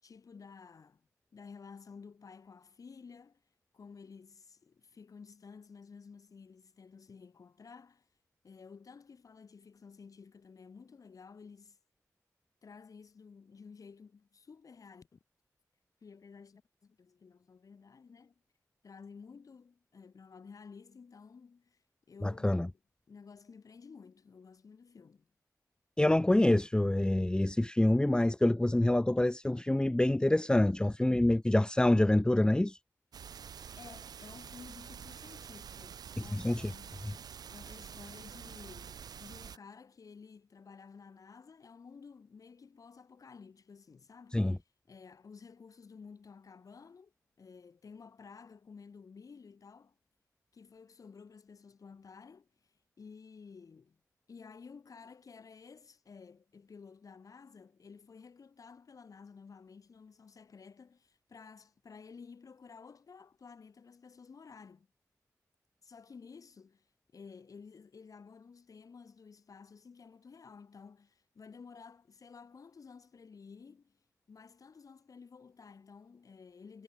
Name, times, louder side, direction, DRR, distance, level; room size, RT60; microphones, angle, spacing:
voice 1, 0.0-1.1 1.3-3.4 3.7-8.1 8.4-11.8 12.6-15.2 16.0-18.3 18.8-21.8 22.1-22.8 23.1-25.3 33.8-37.0 37.5-44.5 44.9-47.1 47.4-50.0 50.5-54.0 54.3-64.9 65.8-66.9 67.1-74.0 74.3-76.8, left 5 dB, 60° left, 5.6 m, -53 dB
voice 2, 22.2-22.7 26.0-32.8 36.4-36.6 44.3-44.6, left 1 dB, 15° left, 0.9 m, -26 dB
sound 1, 33.1-39.6, right 7 dB, 80° right, 7.2 m, -47 dB
cardioid pair, 50°, 7 cm